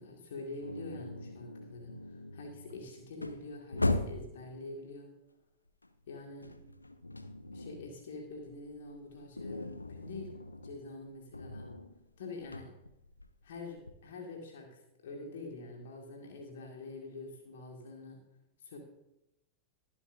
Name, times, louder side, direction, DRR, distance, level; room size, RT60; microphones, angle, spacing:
voice 1, 0.0-5.1 6.1-6.5 7.5-10.4 10.6-11.7 12.2-12.8 13.4-18.2 18.6-18.8, left 3 dB, 60° left, 1 dB, 2.0 m, -46 dB
sound 1, 0.6-4.4 5.8-7.9 8.2-14.0, left 2 dB, 85° left, 0.6 m, -39 dB
21.5 x 7.2 x 2.7 m, 0.87 s
figure-of-eight pair, 90°, 0 cm